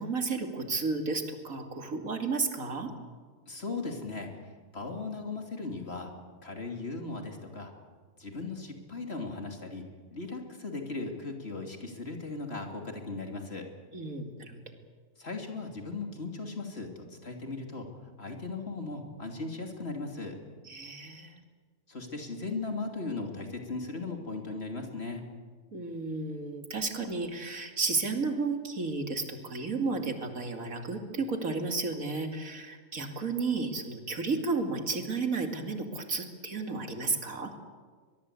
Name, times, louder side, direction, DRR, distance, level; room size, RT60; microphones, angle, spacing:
voice 1, 0.0-2.9 13.9-14.6 20.6-21.4 25.7-37.5, right 3 dB, 80° right, 4 dB, 2.9 m, -32 dB
voice 2, 3.5-4.4 4.7-6.1 6.4-7.7 8.2-9.8 10.1-13.7 15.2-17.9 18.2-20.4 21.9-25.2, left 3 dB, 50° left, 3 dB, 3.2 m, -37 dB
23.0 x 22.0 x 8.4 m, 1.5 s
omnidirectional pair, 1.4 m